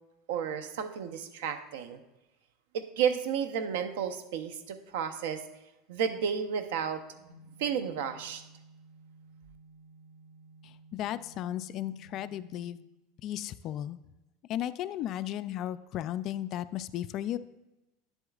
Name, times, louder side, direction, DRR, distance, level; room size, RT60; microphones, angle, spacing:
voice 1, 0.3-2.0 2.7-5.4 5.9-7.0 7.6-8.4, right 7 dB, 75° right, 9 dB, 0.7 m, -32 dB
sound 1, 7.3-12.7, right 3 dB, 30° right, 3.0 m, -55 dB
voice 2, 10.6-12.8 13.2-14.0 14.5-17.4, left 12 dB, 40° left, 13 dB, 0.3 m, -35 dB
10.0 x 7.9 x 2.4 m, 0.98 s
supercardioid pair, 145°, 0 cm